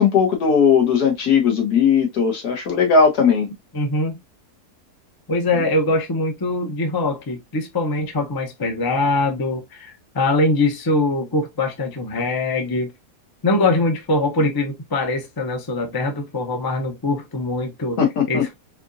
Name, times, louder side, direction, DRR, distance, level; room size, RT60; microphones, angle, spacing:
voice 1, 0.0-3.5 18.0-18.4, left 6 dB, 80° left, 1.8 m, -17 dB
voice 2, 3.7-4.2 5.3-12.9 13.4-18.0 18.3-18.5, left 2 dB, 25° left, 0.5 m, -22 dB
4.3 x 2.7 x 2.5 m
omnidirectional pair, 1.7 m